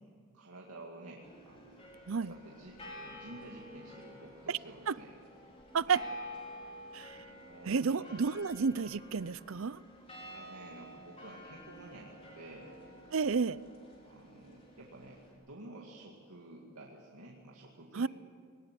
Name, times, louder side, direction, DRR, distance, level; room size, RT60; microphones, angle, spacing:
voice 1, 0.0-2.0 2.3-5.1 5.9-6.0 7.2-8.1 10.2-12.8 14.0-18.1, right 1 dB, 85° right, -1 dB, 2.4 m, -51 dB
sound 1, 1.2-15.3, equal, 25° left, 4.7 m, -50 dB
voice 2, 7.7-9.8 13.1-13.6 17.9-18.1, right 5 dB, 65° right, 18 dB, 0.6 m, -31 dB
21.5 x 19.5 x 9.8 m, 2.2 s
head